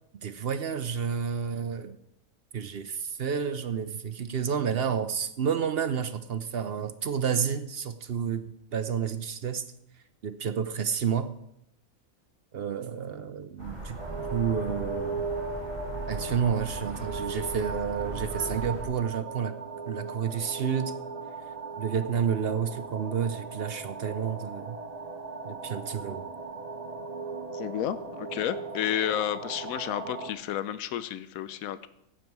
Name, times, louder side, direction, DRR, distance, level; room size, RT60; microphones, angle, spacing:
voice 1, 0.2-2.0 2.5-9.6 10.2-11.3 12.5-14.0 14.3-15.2 16.1-19.5 19.9-20.9 21.8-24.8 25.5-26.2, right 7 dB, 55° right, 11 dB, 0.8 m, -30 dB
sound 1, 13.6-18.8, right 2 dB, 20° left, 4.2 m, -39 dB
sound 2, 14.0-30.3, right 3 dB, 30° right, 1.2 m, -38 dB
voice 2, 27.5-31.9, left 11 dB, 85° left, 14 dB, 1.1 m, -31 dB
14.5 x 8.8 x 4.6 m, 0.79 s
omnidirectional pair, 1.4 m